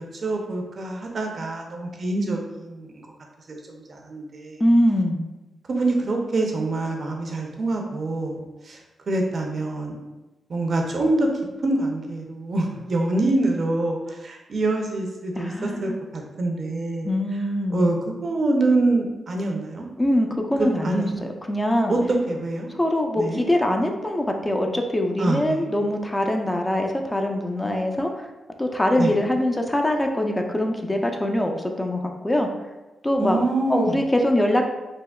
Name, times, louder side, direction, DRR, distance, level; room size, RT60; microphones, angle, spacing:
voice 1, 0.0-3.0 3.5-4.6 5.7-8.4 8.6-8.8 9.1-10.0 10.5-11.3 11.6-17.1 17.7-18.0 18.2-19.9 20.6-21.3 21.9-22.7 23.2-23.4 25.2-25.7 29.0-29.1 33.2-34.0, right 2 dB, 55° right, 1 dB, 0.5 m, -25 dB
voice 2, 4.6-5.2 15.4-16.0 17.0-17.9 20.0-22.0 22.7-28.3 28.6-32.5 33.0-33.4 33.7-34.6, left 1 dB, 20° left, 3 dB, 0.4 m, -23 dB
3.4 x 2.1 x 2.2 m, 1.1 s
supercardioid pair, 45°, 0 cm